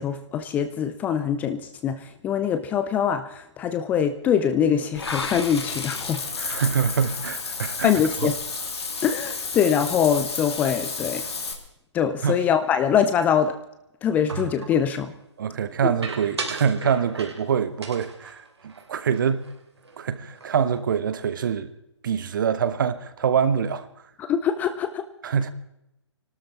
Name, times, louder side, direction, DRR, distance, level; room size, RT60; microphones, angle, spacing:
voice 1, 0.0-6.2 7.8-8.3 9.0-11.2 11.9-13.5 14.0-15.1 24.3-25.0, left 8 dB, 10° left, 0.5 m, -23 dB
Water / Bathtub (filling or washing), 4.9-11.5, left 4 dB, 60° left, 2.9 m, -31 dB
voice 2, 6.4-7.9 8.2-8.3 12.2-12.4 15.4-19.4 20.0-21.7 22.0-23.9 25.2-25.5, right 7 dB, 45° right, 1.2 m, -25 dB
sound 1, 14.3-14.9 16.0-17.5 17.8-19.5 19.8-20.0 20.3-20.8, right 4 dB, 65° right, 3.0 m, -36 dB
25.0 x 12.5 x 4.3 m
figure-of-eight pair, 135°, 15 cm